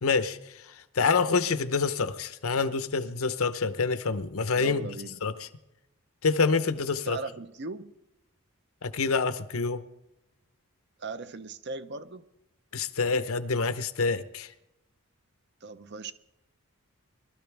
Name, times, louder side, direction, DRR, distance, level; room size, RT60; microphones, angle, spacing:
voice 1, 0.0-0.4 1.0-4.8 5.2-5.5 6.2-7.2 8.8-9.8 12.7-14.5, left 4 dB, 70° left, 0.8 m, -27 dB
voice 2, 4.6-5.2 7.1-7.9 11.0-12.3 15.6-16.1, right 3 dB, 50° right, 0.8 m, -38 dB
23.0 x 13.0 x 3.4 m
head